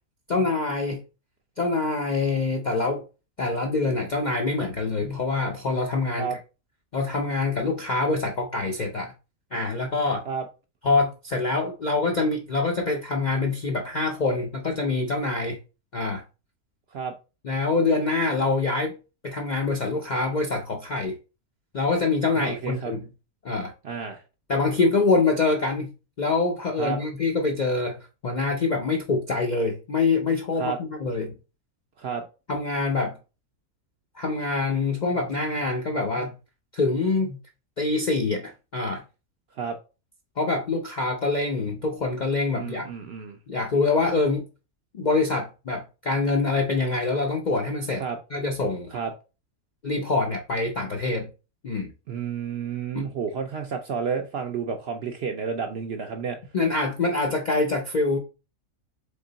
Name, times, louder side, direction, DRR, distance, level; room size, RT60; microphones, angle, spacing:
voice 1, 0.3-1.0 1.6-3.1 3.4-6.3 6.9-9.1 9.5-10.2 10.8-15.6 15.9-16.2 17.4-18.9 19.2-21.2 21.7-23.0 23.4-23.7 24.5-25.9 26.2-28.0 28.2-31.3 32.5-33.2 34.1-36.4 36.7-37.4 37.8-39.0 40.4-42.9 43.5-44.5 44.9-48.0 48.3-48.9 49.8-51.3 51.6-51.9 52.9-53.1 56.5-58.2, left 3 dB, 55° left, 0.5 m, -25 dB
voice 2, 22.3-22.9 23.8-24.2 26.8-27.0 30.6-30.8 32.0-32.3 39.6-39.8 42.5-43.4 48.0-48.2 48.9-49.1 52.1-56.4, right 6 dB, 65° right, 0.6 m, -31 dB
3.7 x 3.6 x 3.9 m
omnidirectional pair, 1.5 m